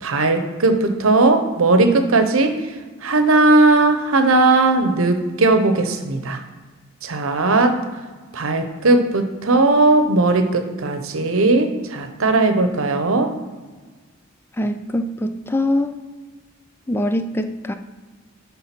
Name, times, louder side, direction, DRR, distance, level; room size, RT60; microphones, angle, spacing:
voice 1, 0.0-2.5 3.0-6.4 7.0-7.8 8.3-13.3, right 2 dB, 85° right, 7 dB, 0.8 m, -17 dB
voice 2, 14.6-16.0 16.9-17.7, left 1 dB, 10° left, 8 dB, 0.4 m, -23 dB
10.0 x 3.8 x 5.9 m, 1.4 s
head